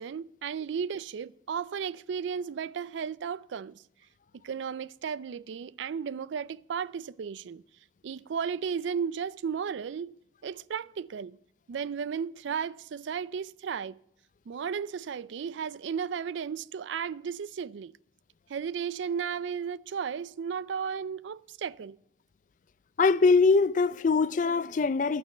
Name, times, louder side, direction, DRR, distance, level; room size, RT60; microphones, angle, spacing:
voice 1, 0.0-3.8 4.4-7.6 8.0-10.1 10.4-11.4 11.7-14.0 14.5-17.9 18.5-22.0, right 7 dB, 75° right, 0.4 m, -34 dB
voice 2, 23.0-25.2, left 4 dB, 40° left, 0.4 m, -22 dB
11.5 x 9.0 x 6.5 m
head